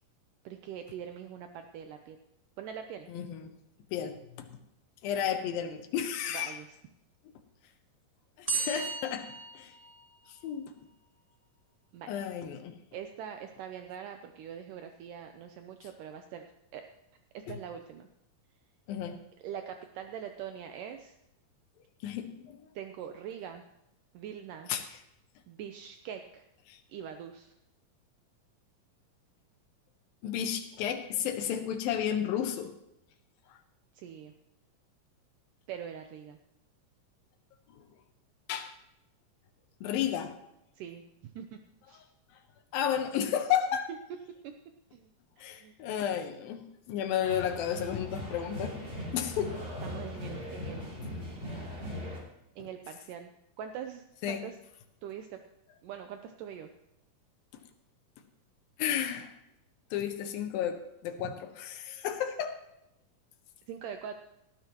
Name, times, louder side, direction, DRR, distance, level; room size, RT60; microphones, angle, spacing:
voice 1, 0.5-2.2 2.6-3.1 6.3-6.8 11.9-12.1 12.9-16.4 16.7-16.9 17.3-18.1 19.4-21.2 22.8-23.6 24.1-24.7 25.5-26.5 26.9-27.5 34.0-34.3 35.7-36.4 40.8-41.0 41.4-41.6 41.9-42.0 44.4-44.5 44.9-45.1 45.4-45.7 49.8-51.0 52.6-53.3 53.6-54.6 55.0-55.4 55.8-56.7 61.2-61.3 63.7-64.1, right 8 dB, 75° right, 6 dB, 2.2 m, -43 dB
voice 2, 3.1-3.5 3.9-4.5 5.0-6.5 8.4-9.3 9.5-9.7 10.3-10.7 12.1-12.8 18.9-19.2 22.0-22.7 24.7-24.8 26.7-26.8 30.2-32.7 33.5-33.6 37.7-37.8 38.5-38.7 39.8-40.3 42.7-43.9 45.4-48.8 49.1-49.6 52.6-52.7 54.2-54.4 58.8-59.3 59.9-62.6, left 9 dB, 90° left, 6 dB, 2.8 m, -32 dB
sound 1, 8.5-10.4, right 4 dB, 50° right, 0.4 m, -35 dB
sound 2, 47.2-52.2, equal, 25° right, 3.4 m, -39 dB
18.0 x 13.5 x 3.0 m, 0.84 s
omnidirectional pair, 4.0 m